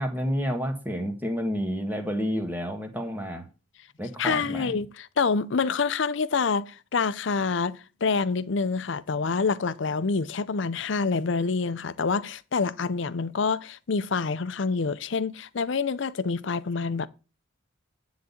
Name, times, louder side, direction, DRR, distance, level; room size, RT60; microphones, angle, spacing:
voice 1, 0.0-3.4 4.0-4.8, equal, 10° right, 1.4 m, -30 dB
voice 2, 4.2-17.1, left 4 dB, 65° left, 0.6 m, -27 dB
10.0 x 4.0 x 7.1 m
head